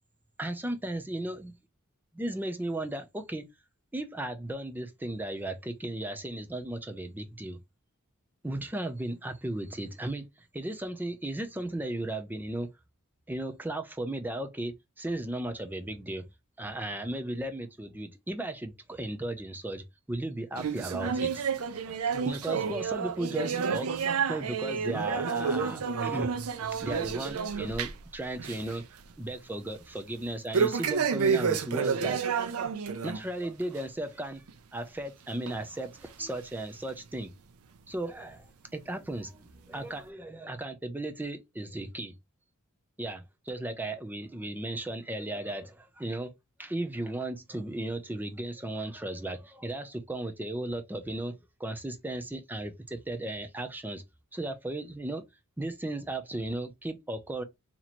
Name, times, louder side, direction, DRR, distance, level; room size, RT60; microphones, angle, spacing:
voice 1, 0.4-1.5 2.1-3.5 3.9-7.6 8.4-12.7 13.3-16.3 16.6-23.9 24.3-26.3 26.8-28.8 29.2-32.5 33.0-34.4 34.7-37.3 37.9-42.2 43.0-46.3 46.6-54.0 54.3-55.2 55.6-57.4, right 1 dB, 10° right, 0.5 m, -36 dB
sound 1, 20.5-28.1 28.4-28.7 29.1-29.2 30.5-33.2 33.6-33.8 34.5-34.6 35.5-35.6 36.3-36.4, right 6 dB, 75° right, 0.5 m, -30 dB
2.9 x 2.9 x 4.1 m
head